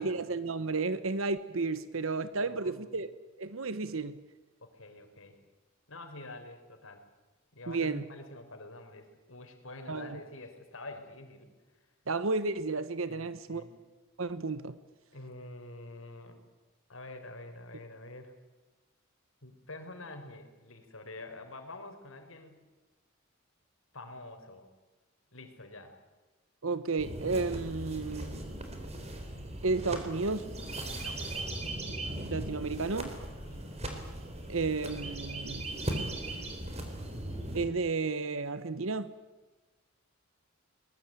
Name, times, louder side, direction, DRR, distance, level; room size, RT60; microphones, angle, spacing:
voice 1, 0.0-4.2 7.7-8.1 9.9-10.2 12.1-13.6 14.2-14.8 26.6-28.4 29.6-30.5 32.3-33.1 34.5-35.7 37.5-39.1, right 3 dB, 75° right, 1.1 m, -32 dB
voice 2, 2.5-2.9 4.6-5.4 5.9-7.0 7.5-11.5 13.1-13.8 15.1-16.4 16.9-18.3 19.4-22.6 23.9-24.7 25.3-26.0 31.0-31.2 33.4-33.6, left 2 dB, 70° left, 4.5 m, -47 dB
sound 1, 27.0-37.7, right 1 dB, 30° right, 4.1 m, -38 dB
23.0 x 21.0 x 8.9 m
head